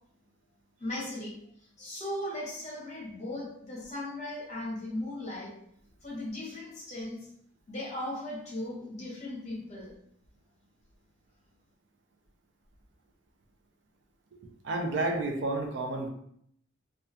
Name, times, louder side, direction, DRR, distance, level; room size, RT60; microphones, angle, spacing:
voice 1, 0.8-1.4 1.8-5.6 6.0-7.3 7.7-9.9, left 1 dB, 35° left, -4 dB, 0.8 m, -37 dB
voice 2, 14.6-16.1, right 2 dB, 65° right, 3 dB, 0.4 m, -30 dB
2.3 x 2.2 x 2.7 m, 0.69 s
head